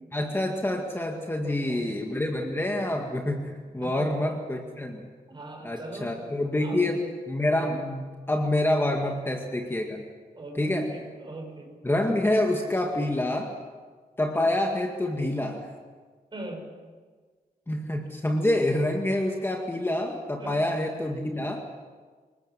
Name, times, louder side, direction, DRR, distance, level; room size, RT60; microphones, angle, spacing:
voice 1, 0.1-5.1 5.6-10.0 10.6-10.9 11.8-13.6 14.2-15.7 17.7-21.6, left 1 dB, 15° left, 2 dB, 2.0 m, -27 dB
voice 2, 1.3-2.6 3.6-4.4 5.3-6.2 6.6-7.1 10.3-11.7 16.3-16.7 20.4-20.6, right 2 dB, 30° right, 2 dB, 6.1 m, -42 dB
27.0 x 19.5 x 7.6 m, 1.5 s
wide cardioid pair, 150°, 16 cm